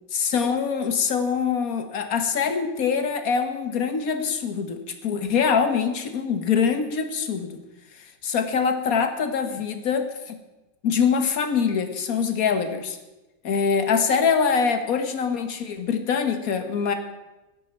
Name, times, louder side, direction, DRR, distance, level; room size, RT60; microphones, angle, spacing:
voice 1, 0.1-7.6 7.9-10.4 10.8-13.0 13.4-16.9, left 6 dB, 55° left, 7 dB, 1.6 m, -24 dB
17.0 x 9.9 x 4.4 m, 1.1 s
omnidirectional pair, 1.9 m